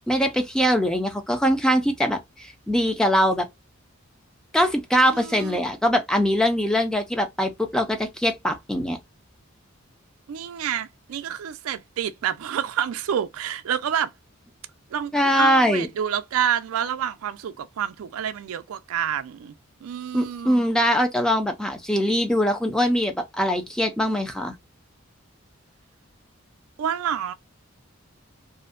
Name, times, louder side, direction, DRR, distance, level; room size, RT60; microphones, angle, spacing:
voice 1, 0.1-3.5 4.5-9.0 15.1-15.9 20.1-24.5, equal, 5° left, 0.4 m, -22 dB
voice 2, 5.1-5.6 10.3-14.1 14.9-19.5 19.8-20.6 26.8-27.3, right 9 dB, 85° right, 0.3 m, -28 dB
2.5 x 2.1 x 2.3 m
head